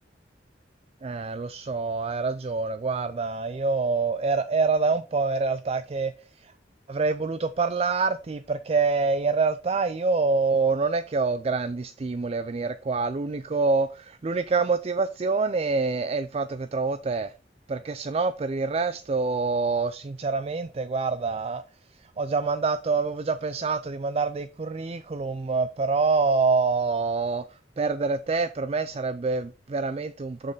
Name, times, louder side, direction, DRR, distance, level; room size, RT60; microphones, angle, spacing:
voice 1, 1.0-6.1 6.4-6.5 6.9-17.3 17.7-21.6 22.2-27.4 27.8-30.5, right 4 dB, 35° right, 0.4 m, -26 dB
6.5 x 6.5 x 3.9 m
head